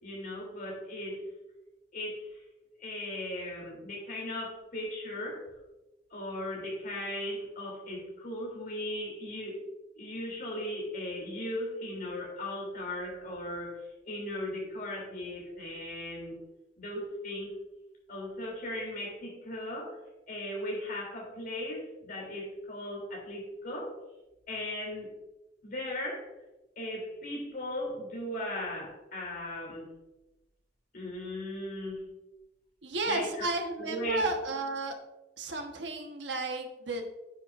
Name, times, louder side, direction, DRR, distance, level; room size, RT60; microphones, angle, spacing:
voice 1, 0.0-1.2 1.9-2.4 2.8-5.5 6.1-9.6 9.9-16.4 16.8-17.5 18.1-20.0 20.3-23.9 24.5-25.1 25.6-26.3 26.8-29.9 30.9-32.1 33.0-33.5 33.8-34.3, left 1 dB, 55° left, -1 dB, 3.1 m, -37 dB
voice 2, 32.8-35.0 35.4-37.0, right 2 dB, 85° right, 4 dB, 1.2 m, -33 dB
9.5 x 9.5 x 2.5 m, 1.0 s
head